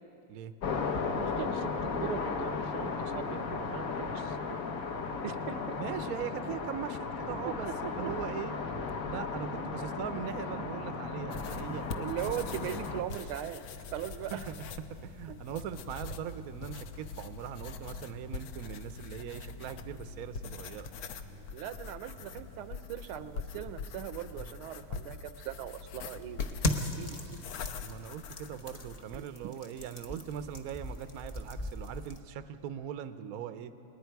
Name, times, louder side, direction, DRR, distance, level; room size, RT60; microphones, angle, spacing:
sound 1, 0.6-13.0, left 4 dB, 50° left, 1.2 m, -35 dB
voice 1, 1.0-4.7 5.2-5.8 7.4-8.1 8.7-8.9 9.6-9.7 10.6-10.7 11.9-13.6 13.9-14.5 20.6-20.7 21.3-27.2 29.1-29.5, right 11 dB, 85° right, 11 dB, 1.6 m, -40 dB
voice 2, 5.8-8.6 9.1-11.9 14.5-14.6 15.0-20.9 24.4-24.5 27.1-27.2 27.8-33.7, right 9 dB, 65° right, 10 dB, 0.9 m, -40 dB
sound 2, 11.3-29.0, left 5 dB, 75° left, 1.6 m, -43 dB
sound 3, 26.4-32.2, left 2 dB, 35° left, 0.6 m, -38 dB
30.0 x 19.5 x 4.6 m, 2.9 s
omnidirectional pair, 2.3 m